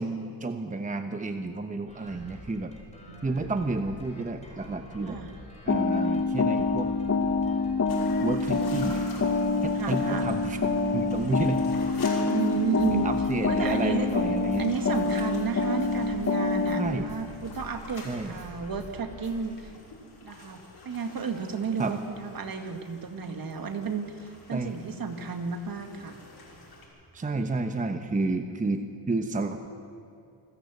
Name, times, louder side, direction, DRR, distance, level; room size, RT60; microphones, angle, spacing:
voice 1, 0.0-2.7 3.2-5.2 5.6-6.9 8.2-9.0 9.6-10.6 10.9-11.6 12.9-14.7 16.8-17.1 18.0-18.3 21.8-21.9 24.5-24.8 27.1-29.7, right 3 dB, 15° right, 7 dB, 1.0 m, -31 dB
sound 1, 1.9-19.4, left 1 dB, 15° left, 4.7 m, -46 dB
voice 2, 3.0-3.5 5.1-5.3 9.7-10.3 12.2-13.1 13.5-14.1 14.6-19.7 20.2-26.2 27.2-27.3, right 5 dB, 50° right, 6 dB, 2.0 m, -33 dB
sound 2, 5.7-17.0, left 3 dB, 35° left, 1.3 m, -26 dB
sound 3, 7.9-26.8, left 2 dB, 55° left, 6.1 m, -46 dB
27.0 x 13.0 x 8.3 m, 2.5 s
cardioid pair, 100°, 45 cm